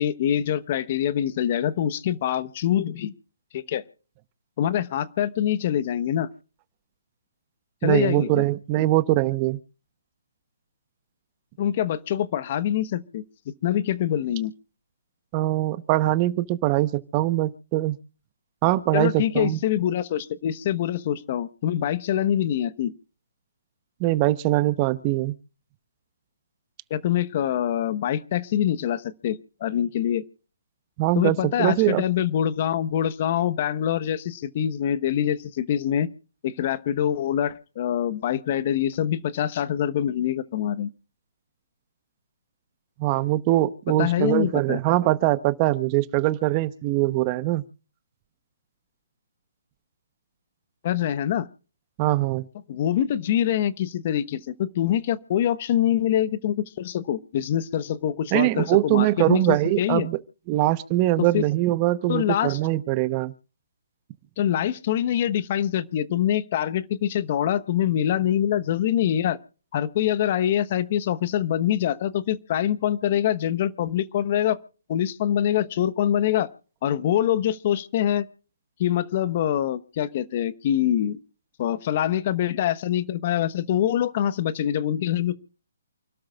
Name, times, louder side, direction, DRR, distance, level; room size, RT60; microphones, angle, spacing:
voice 1, 0.0-3.1 3.5-3.8 4.6-6.3 7.8-8.4 11.6-13.2 13.6-14.5 18.9-22.9 26.9-30.2 31.1-36.1 36.4-40.9 44.0-44.8 50.8-51.5 52.7-60.1 61.2-61.4 62.1-62.6 64.4-69.4 69.7-74.6 74.9-76.5 76.8-78.3 78.8-81.2 81.6-85.3, left 10 dB, 40° left, 14 dB, 1.1 m, -24 dB
voice 2, 7.8-9.6 15.3-18.0 18.6-19.6 24.0-25.3 31.0-32.0 43.0-47.6 52.0-52.5 58.3-60.2 60.5-63.3, right 16 dB, 30° right, 14 dB, 0.9 m, -22 dB
29.0 x 12.5 x 2.4 m, 0.39 s
hypercardioid pair, 145°, 0 cm